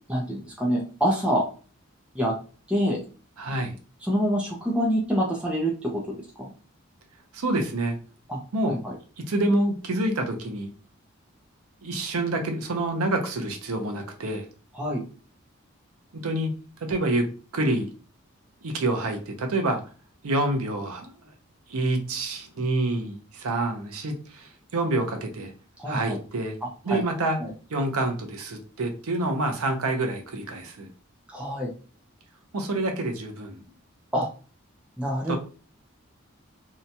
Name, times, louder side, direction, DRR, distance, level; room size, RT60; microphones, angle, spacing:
voice 1, 0.1-1.4 2.1-2.3 2.7-3.0 4.0-6.0 6.4-6.5 8.3-8.9 14.7-15.0 25.8-26.2 26.9-27.0 27.4-27.5 31.3-31.7 34.1-34.3 35.0-35.4, equal, 5° right, -3 dB, 0.5 m, -26 dB
voice 2, 3.4-3.7 7.3-8.0 8.5-8.8 9.3-10.7 11.8-14.5 16.1-16.5 16.8-17.3 17.5-17.9 18.6-19.8 20.2-21.1 21.7-25.5 25.9-26.6 26.8-27.4 27.7-30.9 32.5-33.6 35.3-35.4, right 2 dB, 90° right, 5 dB, 0.6 m, -27 dB
2.8 x 2.2 x 2.7 m, 0.37 s
head